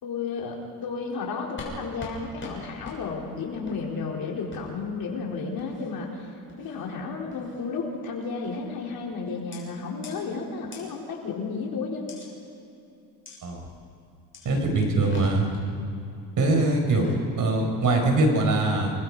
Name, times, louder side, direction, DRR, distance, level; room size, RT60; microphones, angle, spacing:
voice 1, 0.0-6.3 6.6-12.2, left 4 dB, 55° left, -1 dB, 4.5 m, -32 dB
sound 1, 1.6-1.7 2.0-2.1 2.4-2.5 2.8-3.0 3.6-3.8 4.5-4.6 5.6-5.9 6.5-6.8 7.3-7.6 8.4-8.7 9.5-9.6 10.0-10.1 10.7-10.8 12.1-12.3 13.2-13.4 14.3-14.5 14.9-15.6 16.8-17.2, left 4 dB, 30° left, 6.7 m, -42 dB
voice 2, 14.4-15.5 16.4-17.1 17.4-18.9, right 2 dB, 45° right, 3 dB, 5.1 m, -22 dB
29.0 x 21.5 x 5.0 m, 2.8 s
cardioid pair, 120°, 42 cm